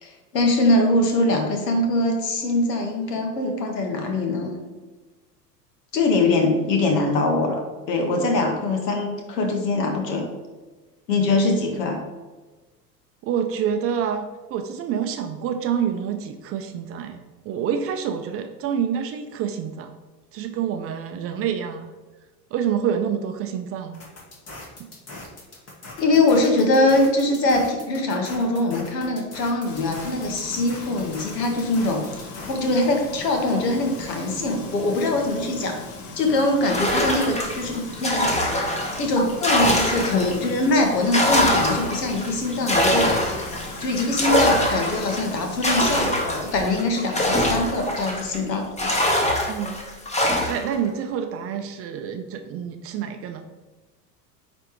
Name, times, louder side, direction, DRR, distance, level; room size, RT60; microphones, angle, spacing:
voice 1, 0.0-4.6 5.9-10.3 11.1-12.0 26.0-35.8 36.1-38.3 38.6-38.7 39.0-43.4 43.8-49.0, left 2 dB, 80° left, 3 dB, 1.3 m, -23 dB
voice 2, 13.2-19.9 20.3-21.9 22.5-24.0 49.5-49.8 50.5-53.4, right 8 dB, 30° right, 6 dB, 0.4 m, -27 dB
sound 1, 23.9-32.6, left 2 dB, 30° left, 1.8 m, -41 dB
Frying (food), 29.7-45.7, left 3 dB, 45° left, 1.3 m, -39 dB
sound 2, 36.6-40.5 40.9-48.4 48.8-50.7, left 1 dB, 15° left, 1.1 m, -23 dB
9.2 x 3.4 x 3.0 m, 1.2 s
hypercardioid pair, 85°, 48 cm